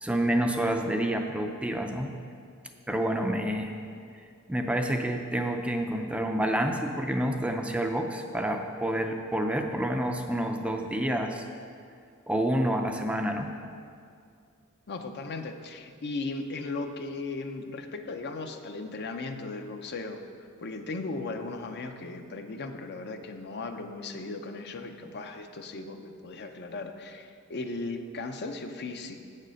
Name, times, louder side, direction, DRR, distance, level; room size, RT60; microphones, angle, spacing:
voice 1, 0.0-2.1 2.9-4.0 4.5-11.4 12.3-13.5, right 1 dB, 5° right, 4 dB, 0.4 m, -28 dB
voice 2, 14.9-20.2 20.6-29.2, left 3 dB, 50° left, 6 dB, 0.6 m, -37 dB
8.2 x 6.6 x 6.3 m, 2.3 s
head